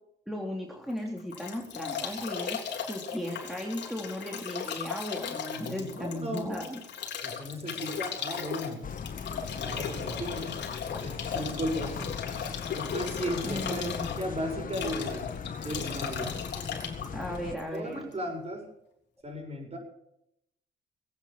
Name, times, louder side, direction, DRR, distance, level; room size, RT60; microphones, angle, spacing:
voice 1, 0.3-6.8 13.4-14.1 17.1-18.0, left 1 dB, ahead, 0 dB, 3.0 m, -36 dB
Bathtub (filling or washing) / Drip / Trickle dribble, 0.9-18.1, left 7 dB, 60° left, 3.5 m, -37 dB
voice 2, 5.5-6.6 7.2-8.9 9.6-10.6 11.0-13.9 14.2-15.3 15.6-16.4 17.7-18.7 19.2-19.8, equal, 30° right, 3 dB, 7.0 m, -36 dB
sound 1, 8.8-17.6, left 6 dB, 45° left, 1.4 m, -38 dB
20.0 x 9.0 x 7.4 m, 0.77 s
cardioid pair, 90°, 20 cm